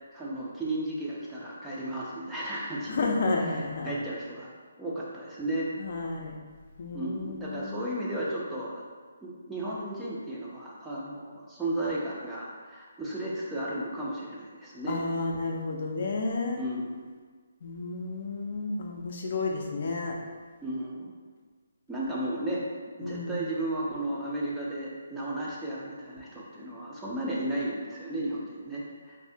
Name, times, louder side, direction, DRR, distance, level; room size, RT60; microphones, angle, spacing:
voice 1, 0.1-3.1 3.5-4.5 4.8-5.7 6.9-8.9 9.2-15.1 16.6-17.1 20.6-21.1 21.9-22.6 23.0-29.2, right 1 dB, 5° right, -7 dB, 0.4 m, -34 dB
voice 2, 2.9-3.9 5.8-6.4 6.8-7.9 14.9-16.6 17.6-20.2 23.0-23.4, left 3 dB, 50° left, 0 dB, 0.4 m, -31 dB
2.6 x 2.5 x 3.5 m, 1.5 s
hypercardioid pair, 160°, 0 cm